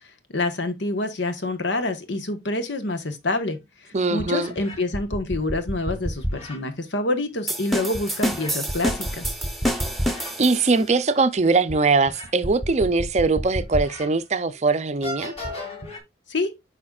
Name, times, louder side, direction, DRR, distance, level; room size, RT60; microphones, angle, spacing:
voice 1, 0.3-9.3 16.3-16.5, left 2 dB, 75° left, 1.2 m, -27 dB
sound 1, 3.5-3.6 4.2-6.6 7.9-10.3 10.8-10.9 11.7-14.1 14.5-14.6 15.0-16.0, equal, 35° left, 2.1 m, -31 dB
voice 2, 3.9-4.6 10.4-15.3, right 3 dB, 35° right, 0.5 m, -21 dB
sound 2, 7.5-10.9, equal, ahead, 0.9 m, -28 dB
8.6 x 5.0 x 2.4 m
head